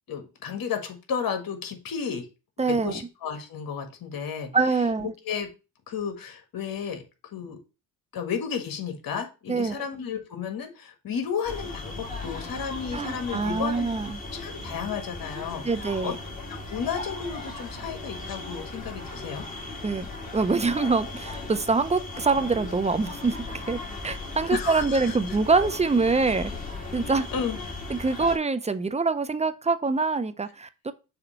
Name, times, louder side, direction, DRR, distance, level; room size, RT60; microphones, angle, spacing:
voice 1, 0.1-2.3 2.6-4.5 5.0-5.5 5.9-7.0 7.3-7.6 8.1-14.0 14.3-16.1 16.5-19.4 24.5-25.2 27.0-27.6, left 7 dB, 55° left, 1.6 m, -33 dB
voice 2, 2.6-3.0 4.5-5.1 9.5-9.8 12.9-14.2 15.6-16.1 19.8-20.1 20.3-23.8 24.0-26.5 26.9-27.3 27.9-30.9, right 4 dB, 15° right, 0.5 m, -25 dB
sound 1, 11.5-28.4, left 2 dB, 20° left, 2.5 m, -37 dB
6.7 x 2.8 x 5.4 m
supercardioid pair, 75°, 41 cm